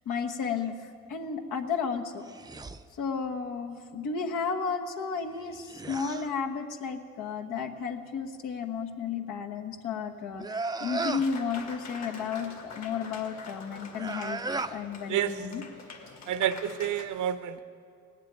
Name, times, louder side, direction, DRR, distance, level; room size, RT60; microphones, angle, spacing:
voice 1, 0.0-2.2 2.9-10.5 10.8-14.4 14.7-15.6, left 6 dB, 85° left, 3 dB, 1.3 m, -33 dB
sound 1, 2.2-2.8 5.3-6.3 10.4-11.3 13.9-14.8, right 3 dB, 15° right, 0.5 m, -35 dB
Applause, 11.0-17.0, left 4 dB, 65° left, 2.3 m, -45 dB
voice 2, 15.1-15.4 16.3-17.6, right 10 dB, 80° right, 11 dB, 0.9 m, -29 dB
17.5 x 7.5 x 10.0 m, 2.2 s
cardioid pair, 90°, 30 cm